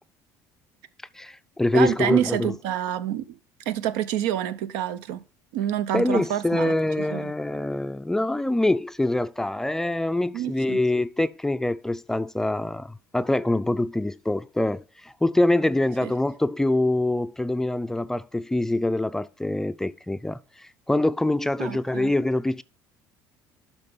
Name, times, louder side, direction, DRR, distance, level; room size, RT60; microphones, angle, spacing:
voice 1, 1.2-2.5 5.9-22.6, left 1 dB, 5° left, 0.3 m, -25 dB
voice 2, 1.7-3.4 3.7-5.2 5.5-7.3 10.3-10.8 16.0-16.1 21.6-22.1, right 11 dB, 90° right, 0.7 m, -28 dB
11.0 x 5.9 x 3.7 m
cardioid pair, 120°, 7 cm